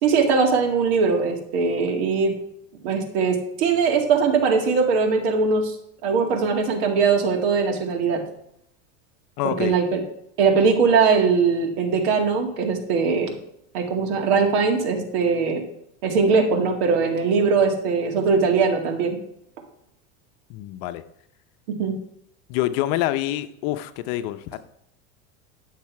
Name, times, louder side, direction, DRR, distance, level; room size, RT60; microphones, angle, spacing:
voice 1, 0.0-2.3 2.8-5.7 6.0-8.2 9.4-10.0 10.4-13.3 13.7-15.6 16.0-19.2 21.8-21.9, right 5 dB, 75° right, 3 dB, 2.2 m, -21 dB
voice 2, 9.4-9.7 20.5-21.0 22.5-24.6, left 14 dB, 60° left, 11 dB, 0.9 m, -26 dB
11.0 x 6.6 x 4.7 m, 0.74 s
supercardioid pair, 125°, 33 cm